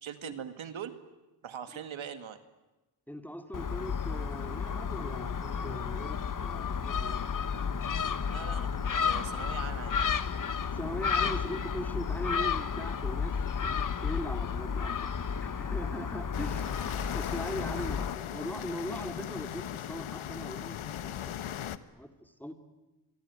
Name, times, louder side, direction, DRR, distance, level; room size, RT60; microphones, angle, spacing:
voice 1, 0.0-1.0 1.4-2.4 8.2-10.0 17.4-17.9, right 8 dB, 75° right, 9 dB, 2.1 m, -42 dB
voice 2, 3.1-7.2 10.7-13.4 13.6-15.0 15.4-16.7 17.1-22.5, equal, 5° left, 6 dB, 2.5 m, -40 dB
Gull seagull, 3.5-18.1, left 6 dB, 40° left, 1.2 m, -32 dB
sound 1, 16.3-21.8, left 10 dB, 85° left, 1.2 m, -38 dB
26.0 x 22.5 x 9.7 m, 1.1 s
wide cardioid pair, 110°, 48 cm